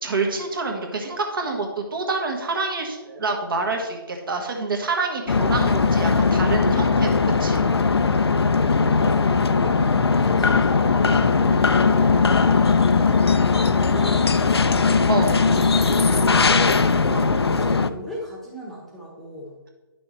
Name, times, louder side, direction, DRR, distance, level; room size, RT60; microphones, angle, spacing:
voice 1, 0.0-7.6 15.1-15.4, right 3 dB, 60° right, 2 dB, 1.8 m, -27 dB
sound 1, 5.3-17.9, left 4 dB, 90° left, 0.5 m, -19 dB
voice 2, 8.7-14.9 15.4-19.5, equal, ahead, -3 dB, 1.0 m, -35 dB
9.9 x 6.1 x 3.1 m, 1.2 s
figure-of-eight pair, 155°, 13 cm